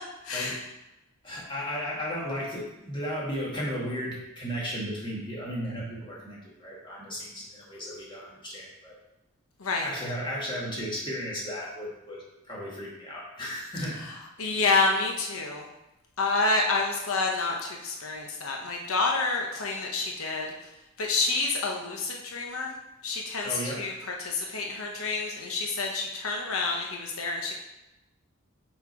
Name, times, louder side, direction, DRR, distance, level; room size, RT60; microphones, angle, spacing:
voice 1, 0.2-0.6 9.6-9.9 14.0-15.6 16.2-20.5 21.0-22.8 23.0-23.9 24.2-27.5, left 3 dB, 85° left, 0 dB, 0.9 m, -28 dB
voice 2, 1.2-8.9 9.7-14.0 23.4-23.9, equal, 20° left, -5 dB, 1.7 m, -35 dB
5.9 x 4.4 x 4.4 m, 0.94 s
head